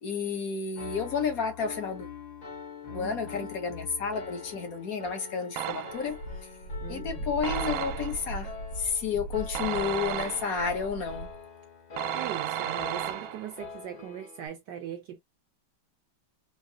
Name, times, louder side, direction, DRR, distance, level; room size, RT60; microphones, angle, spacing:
voice 1, 0.0-2.1 2.9-6.2 6.9-8.5 8.8-11.3, left 6 dB, 50° left, 1.3 m, -31 dB
Piano, 0.8-14.5, left 5 dB, 35° left, 0.7 m, -44 dB
voice 2, 2.9-3.4 6.8-7.2 12.1-15.2, right 9 dB, 70° right, 1.2 m, -40 dB
sound 1, 5.6-6.2 7.4-8.3 9.6-10.8 12.0-13.6, right 11 dB, 90° right, 1.4 m, -34 dB
Wind, 6.0-11.4, right 1 dB, 85° left, 2.0 m, -38 dB
4.9 x 2.1 x 2.7 m
omnidirectional pair, 2.2 m